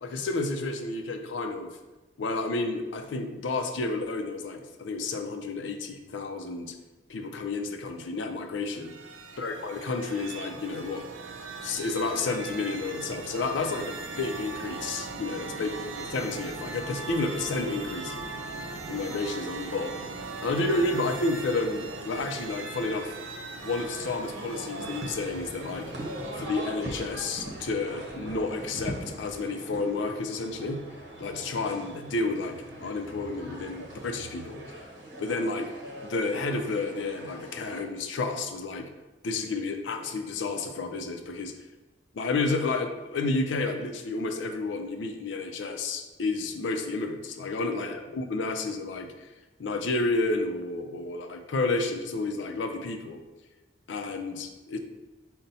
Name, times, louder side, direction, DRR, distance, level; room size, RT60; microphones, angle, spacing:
voice 1, 0.0-1.7 2.2-6.7 7.1-8.9 9.4-11.0 11.6-15.7 16.1-18.2 18.9-19.9 20.4-23.1 23.6-25.9 26.3-30.8 31.2-34.8 35.2-35.7 36.0-38.9 39.2-41.5 42.1-49.3 49.6-53.2 53.9-54.8, left 3 dB, 75° left, 5 dB, 0.5 m, -31 dB
sound 1, 8.6-26.8, right 3 dB, 90° right, 0.5 m, -39 dB
sound 2, 23.7-37.8, right 1 dB, 60° right, 0.8 m, -41 dB
5.4 x 2.1 x 4.0 m, 1.1 s
head